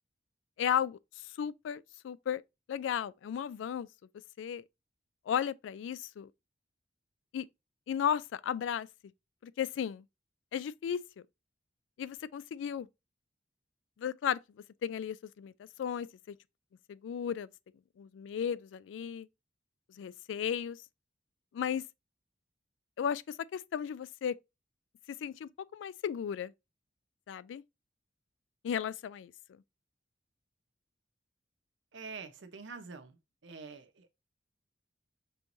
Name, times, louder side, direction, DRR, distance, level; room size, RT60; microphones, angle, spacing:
voice 1, 0.6-2.4 2.7-3.9 4.4-4.6 5.3-6.3 7.3-7.5 7.9-8.9 9.4-10.0 10.5-11.0 12.0-12.9 14.0-14.4 14.8-16.4 16.9-17.5 18.0-19.3 20.0-20.8 21.5-21.8 23.0-24.3 25.1-26.5 27.3-27.6 28.6-29.6, left 8 dB, 90° left, 0.3 m, -35 dB
voice 2, 31.9-33.2 33.4-34.1, right 4 dB, 80° right, 0.7 m, -46 dB
5.5 x 3.0 x 2.6 m
head